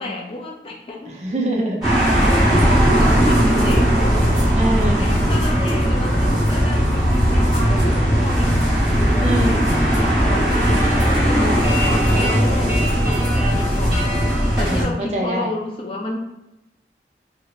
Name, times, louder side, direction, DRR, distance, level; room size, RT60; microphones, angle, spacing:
voice 1, 0.0-1.2 3.0-4.2 5.0-10.9 11.3-14.2 14.6-16.2, left 2 dB, 30° left, -1 dB, 0.3 m, -31 dB
voice 2, 1.1-1.8 4.5-5.1 9.2-9.6 11.4-11.6 14.6-15.5, right 1 dB, 40° right, -1 dB, 0.5 m, -24 dB
sound 1, 1.8-14.8, equal, 5° right, 1.0 m, -17 dB
3.3 x 2.0 x 2.3 m, 0.94 s
head